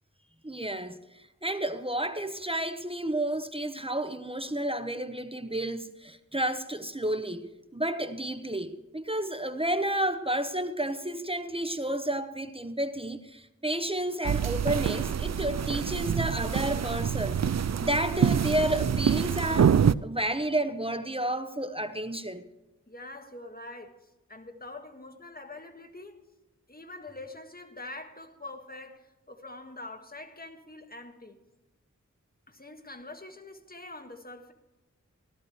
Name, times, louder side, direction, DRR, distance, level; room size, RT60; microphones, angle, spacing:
voice 1, 0.4-1.0 1.4-17.4 17.8-22.4, right 1 dB, 20° right, 0.9 m, -31 dB
sound 1, 14.2-19.9, right 8 dB, 60° right, 0.4 m, -26 dB
voice 2, 22.9-26.2 26.7-31.4 32.5-34.5, left 2 dB, 30° left, 1.7 m, -44 dB
17.5 x 12.5 x 3.2 m
wide cardioid pair, 45°, 31 cm